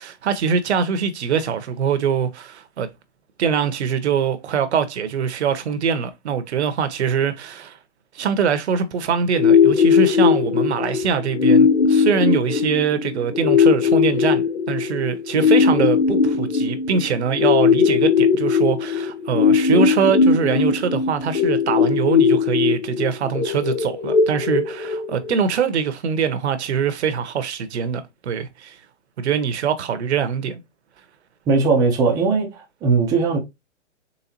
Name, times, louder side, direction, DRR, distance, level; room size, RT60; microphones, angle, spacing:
voice 1, 0.0-2.9 3.4-7.8 8.1-28.8 29.2-30.6, right 7 dB, 65° right, 0.9 m, -23 dB
sound 1, 9.3-25.3, left 6 dB, 85° left, 1.0 m, -18 dB
voice 2, 31.5-32.5 32.8-33.4, right 4 dB, 10° right, 0.6 m, -18 dB
4.1 x 3.4 x 2.8 m
hypercardioid pair, 150°, 36 cm